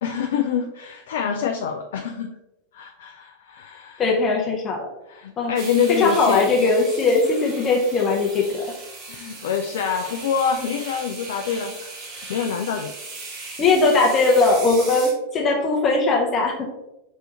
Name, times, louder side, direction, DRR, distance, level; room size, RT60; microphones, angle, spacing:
voice 1, 0.0-2.4 2.7-4.0 5.1-6.5 9.1-12.9, left 7 dB, 55° left, 4 dB, 0.4 m, -26 dB
voice 2, 4.0-4.9 5.4-5.5 5.9-8.7 13.6-16.7, left 3 dB, 25° left, 0 dB, 0.8 m, -19 dB
sound 1, 5.6-15.1, right 3 dB, 35° right, 1.4 m, -37 dB
5.3 x 3.4 x 2.9 m, 0.92 s
figure-of-eight pair, 90°, 0 cm